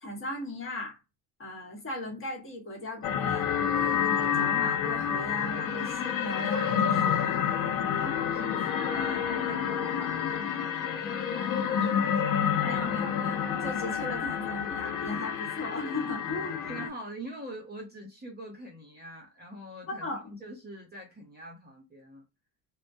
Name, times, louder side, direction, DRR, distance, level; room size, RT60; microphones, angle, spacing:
voice 1, 0.0-1.0 1.4-7.4 7.9-8.2 12.6-16.6 19.9-20.3, left 1 dB, 30° left, 1.1 m, -37 dB
sound 1, 3.0-16.9, left 8 dB, 50° left, 0.6 m, -29 dB
voice 2, 7.9-12.8 16.4-22.2, equal, 25° right, 0.8 m, -44 dB
2.2 x 2.2 x 2.6 m
cardioid pair, 110°, 43 cm